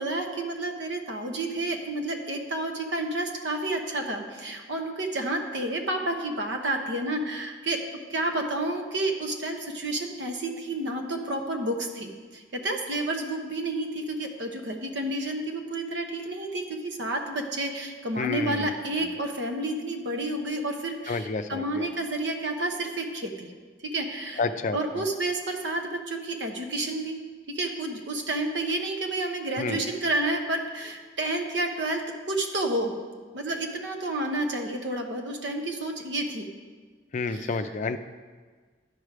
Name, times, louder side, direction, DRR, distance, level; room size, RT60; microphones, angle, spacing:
voice 1, 0.0-7.8 8.1-23.5 23.8-24.4 24.7-27.2 27.5-32.9 33.3-36.5 37.3-37.6, right 2 dB, 70° right, 3 dB, 1.0 m, -30 dB
voice 2, 18.2-18.7 21.1-21.9 24.4-24.8 29.6-29.8 37.1-38.0, left 4 dB, 40° left, 9 dB, 0.4 m, -29 dB
11.5 x 5.0 x 4.7 m, 1.5 s
head